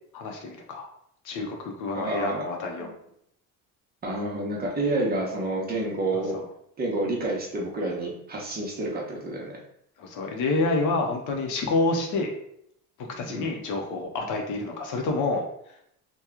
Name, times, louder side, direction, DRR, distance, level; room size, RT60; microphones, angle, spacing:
voice 1, 0.1-0.9 1.2-2.9 6.1-6.4 10.0-12.3 13.0-15.5, left 3 dB, 55° left, 2 dB, 0.7 m, -28 dB
voice 2, 1.9-2.5 2.8-2.9 4.0-6.4 6.8-9.6 13.3-13.5, right 2 dB, 25° right, -2 dB, 0.8 m, -29 dB
2.9 x 2.3 x 3.6 m, 0.72 s
cardioid pair, 135°, 37 cm